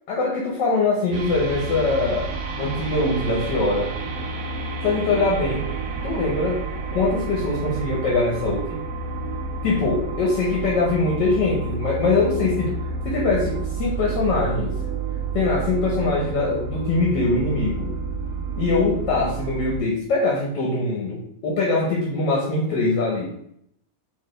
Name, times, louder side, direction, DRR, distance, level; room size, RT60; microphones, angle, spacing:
voice 1, 0.1-2.3 2.6-3.9 4.8-5.6 6.0-6.6 6.9-8.8 9.6-12.7 13.0-14.7 15.3-17.9 18.6-23.2, left 3 dB, 75° left, -3 dB, 1.6 m, -22 dB
sound 1, 1.1-19.8, right 4 dB, 60° right, 1.0 m, -30 dB
4.2 x 3.4 x 3.2 m, 0.71 s
omnidirectional pair, 1.9 m